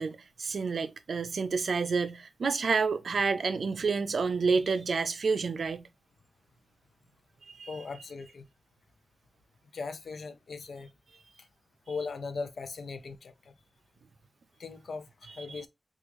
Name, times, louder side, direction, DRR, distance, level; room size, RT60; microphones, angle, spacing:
voice 1, 0.0-5.9 7.5-7.7 15.5-15.6, right 4 dB, 85° right, 0.4 m, -29 dB
voice 2, 7.7-8.5 9.7-10.9 11.9-13.5 14.6-15.7, left 4 dB, 85° left, 0.5 m, -39 dB
3.5 x 2.4 x 2.9 m
wide cardioid pair, 120°, 0 cm